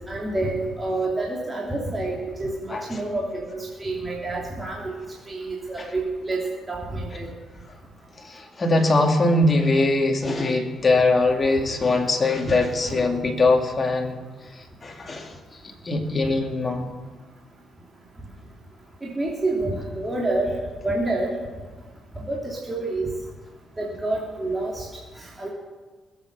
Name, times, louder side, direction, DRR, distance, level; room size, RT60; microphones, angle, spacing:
voice 1, 0.1-4.9 5.3-7.3 19.0-20.6 20.8-21.3 22.2-23.1 23.8-24.9 25.4-25.5, right 2 dB, 20° right, -3 dB, 2.9 m, -28 dB
voice 2, 2.7-3.0 5.8-5.9 8.2-14.2 14.5-15.4 15.8-16.9, left 2 dB, 30° left, 3 dB, 2.4 m, -22 dB
20.0 x 8.3 x 6.8 m, 1.3 s
cardioid pair, 90°, 0 cm